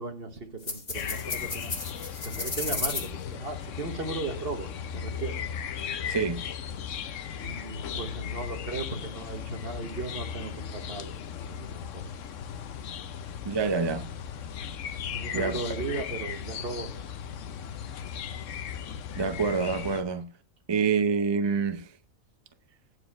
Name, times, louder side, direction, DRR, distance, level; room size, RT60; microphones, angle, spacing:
voice 1, 0.0-1.7 2.2-5.4 7.4-12.1 15.1-17.0, right 3 dB, 45° right, 1.5 m, -37 dB
sound 1, 0.6-3.1, left 3 dB, 30° left, 1.5 m, -34 dB
sound 2, 0.9-20.0, left 8 dB, 65° left, 1.1 m, -37 dB
voice 2, 6.1-6.4 13.4-14.1 15.3-15.6 19.2-20.3 20.7-21.9, right 5 dB, 30° right, 0.5 m, -27 dB
9.8 x 4.8 x 6.0 m
omnidirectional pair, 1.4 m